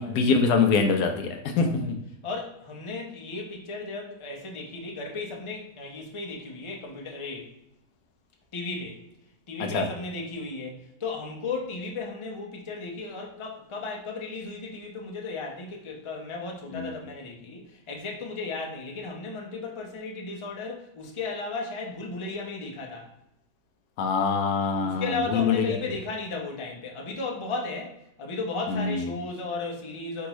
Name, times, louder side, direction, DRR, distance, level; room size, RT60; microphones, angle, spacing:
voice 1, 0.0-1.7 9.7-9.9 16.7-16.9 24.0-25.0 25.3-25.8 28.7-29.0, left 5 dB, 80° left, 4 dB, 1.2 m, -24 dB
voice 2, 1.5-1.9 2.2-7.5 8.5-9.0 9.5-23.1 24.8-27.9 28.2-30.3, left 3 dB, 30° left, 0 dB, 0.6 m, -35 dB
4.7 x 3.4 x 3.0 m, 0.83 s
omnidirectional pair, 1.7 m